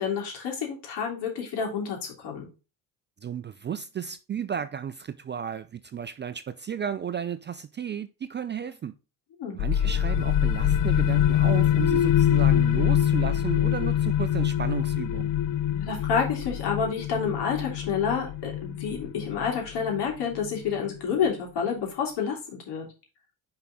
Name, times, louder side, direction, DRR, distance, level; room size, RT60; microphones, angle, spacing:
voice 1, 0.0-2.5 9.4-9.9 15.7-22.4 22.7-22.9, left 6 dB, 65° left, 3.2 m, -29 dB
voice 2, 3.2-8.9 9.5-15.3, right 8 dB, 25° right, 0.4 m, -33 dB
sound 1, 9.6-21.0, left 11 dB, 45° left, 0.5 m, -24 dB
5.7 x 4.8 x 3.8 m
supercardioid pair, 85°, 44 cm